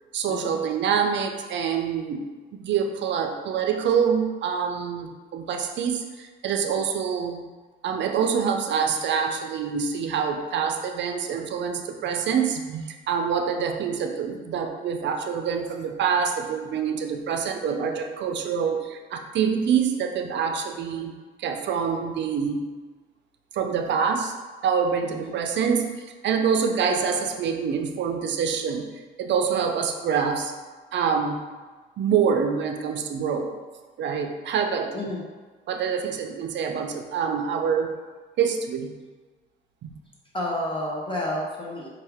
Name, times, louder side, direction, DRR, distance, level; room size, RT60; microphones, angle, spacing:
voice 1, 0.1-7.4 7.8-21.1 21.4-22.6 23.5-24.3 24.6-25.9 26.2-28.9 29.2-30.5 30.9-31.4 32.0-33.5 34.0-35.1 35.7-37.9 38.4-38.9 39.8-39.9, right 6 dB, 65° right, 5 dB, 0.5 m, -26 dB
voice 2, 25.0-25.3 34.9-35.2 40.3-41.9, left 1 dB, 25° left, -3 dB, 0.8 m, -30 dB
4.5 x 2.4 x 3.4 m, 1.4 s
cardioid pair, 90°, 20 cm